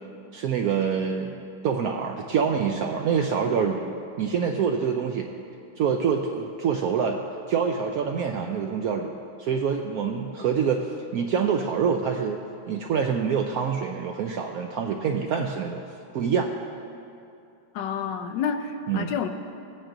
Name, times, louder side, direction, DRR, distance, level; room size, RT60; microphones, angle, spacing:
voice 1, 0.3-1.4 1.6-5.3 5.8-7.2 7.5-9.1 9.4-15.8 16.1-16.5 18.9-19.1, right 6 dB, 75° right, 3 dB, 0.8 m, -26 dB
voice 2, 17.7-19.3, left 7 dB, 80° left, 7 dB, 1.3 m, -29 dB
16.5 x 8.9 x 2.6 m, 2.5 s
omnidirectional pair, 2.0 m